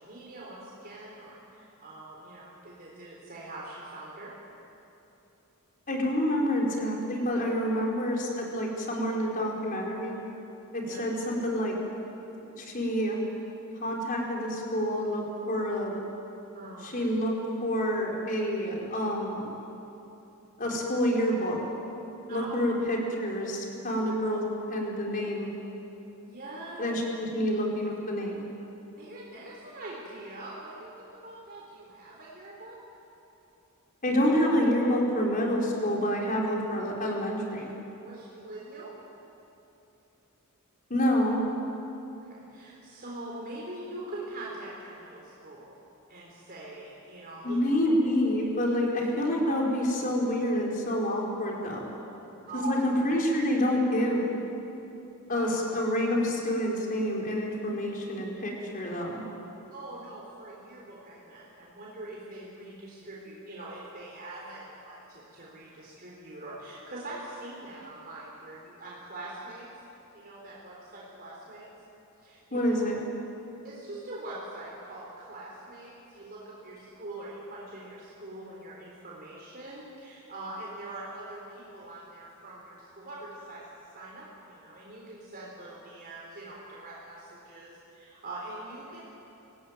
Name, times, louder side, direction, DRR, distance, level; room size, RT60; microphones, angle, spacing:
voice 1, 0.0-4.3 10.9-11.0 16.5-16.9 22.3-22.6 26.2-27.0 29.0-32.8 38.0-38.9 42.3-45.8 46.1-47.6 52.5-52.8 55.3-55.5 59.7-69.7 70.1-71.7 72.2-72.7 73.6-89.0, right 2 dB, 45° right, -4 dB, 3.9 m, -43 dB
voice 2, 5.9-10.2 10.7-11.8 12.6-13.2 13.8-16.0 16.8-17.3 17.6-19.5 20.6-21.6 22.3-25.5 26.8-28.4 34.0-37.7 40.9-41.4 47.4-51.9 52.5-54.2 55.3-59.2 72.5-72.9, equal, 40° left, -2 dB, 4.7 m, -28 dB
25.5 x 18.0 x 9.2 m, 3.0 s
head